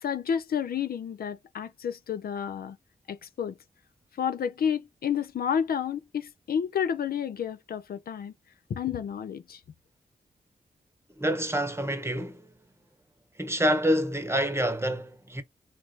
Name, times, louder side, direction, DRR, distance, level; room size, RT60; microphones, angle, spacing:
voice 1, 0.0-2.8 3.1-3.6 4.2-8.3 8.7-9.6, left 8 dB, 70° left, 0.5 m, -30 dB
voice 2, 11.2-12.4 13.4-15.4, equal, 15° right, 0.9 m, -27 dB
3.1 x 2.5 x 3.0 m
cardioid pair, 45°, 16 cm